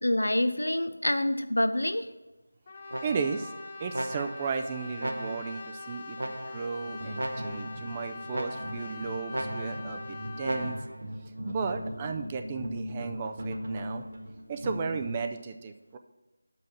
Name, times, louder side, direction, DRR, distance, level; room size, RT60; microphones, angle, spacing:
voice 1, 0.0-2.0, left 1 dB, 85° left, 10 dB, 0.7 m, -26 dB
Brass instrument, 2.7-10.8, left 3 dB, 30° left, 0.7 m, -43 dB
sound 1, 2.9-3.5 3.9-4.6 5.0-5.6 6.2-6.8 7.1-7.8 8.3-8.9 9.3-9.9 10.4-11.0, right 1 dB, 75° right, 1.0 m, -36 dB
voice 2, 3.0-3.5 3.8-10.8 11.5-14.0 14.5-16.0, right 5 dB, 20° right, 6 dB, 0.4 m, -35 dB
sound 2, 6.8-15.2, equal, 45° right, 1.4 m, -39 dB
6.4 x 5.4 x 7.0 m, 1.1 s
figure-of-eight pair, 165°, 0 cm